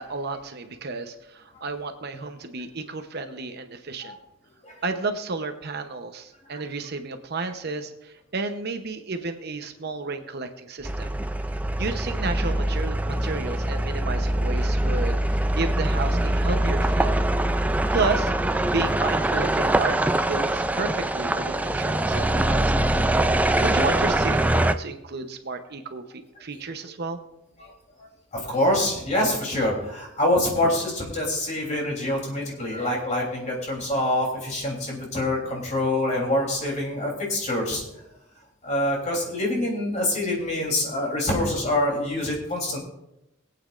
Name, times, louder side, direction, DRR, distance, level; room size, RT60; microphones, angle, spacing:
voice 1, 0.0-4.2 4.8-11.1 11.8-17.2 17.9-18.3 18.7-23.0 23.2-27.2, right 3 dB, 55° right, 7 dB, 0.8 m, -32 dB
sound 1, 10.8-24.7, right 1 dB, 10° right, 0.3 m, -23 dB
voice 2, 28.3-37.8 38.6-42.8, left 1 dB, 35° left, -1 dB, 3.3 m, -25 dB
21.0 x 8.6 x 2.5 m, 0.88 s
head